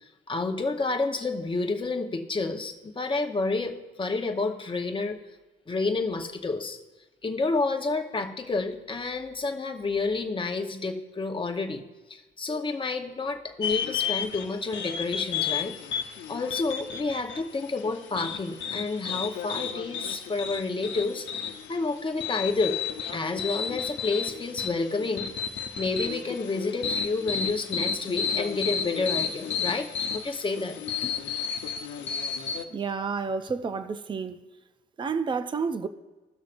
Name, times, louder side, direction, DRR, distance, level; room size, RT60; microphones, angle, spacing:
voice 1, 0.3-5.1 5.7-6.8 7.2-11.8 12.1-15.7 16.3-22.8 23.1-25.3 25.8-29.9 30.1-30.8 31.0-31.1, left 3 dB, 25° left, 1.0 m, -29 dB
sound 1, 13.6-32.6, left 7 dB, 70° left, 0.8 m, -32 dB
voice 2, 32.7-34.4 35.0-35.9, right 5 dB, 25° right, 0.5 m, -30 dB
16.5 x 6.3 x 2.6 m
cardioid pair, 90°, 20 cm